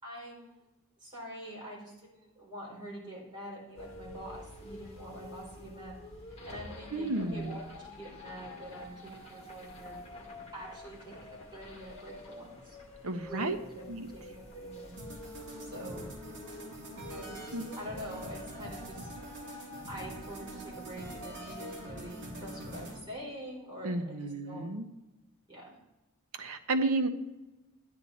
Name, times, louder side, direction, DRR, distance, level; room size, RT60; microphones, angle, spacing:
voice 1, 0.0-0.6 1.0-5.9 6.5-7.6 7.9-10.0 10.5-12.8 13.3-13.8 14.1-14.9 15.6-16.0 17.1-19.1 19.9-24.2 24.4-24.7 25.5-25.6, right 1 dB, 20° right, -5 dB, 4.6 m, -45 dB
sound 1, 3.8-22.0, left 2 dB, 30° left, 2.0 m, -48 dB
voice 2, 6.9-7.6 13.0-13.6 13.9-14.1 17.5-17.6 23.8-24.9 26.3-27.1, right 2 dB, 75° right, 7 dB, 0.9 m, -32 dB
sound 2, 15.0-23.0, right 1 dB, 55° right, 2.6 m, -44 dB
13.0 x 9.9 x 4.2 m, 1.0 s
head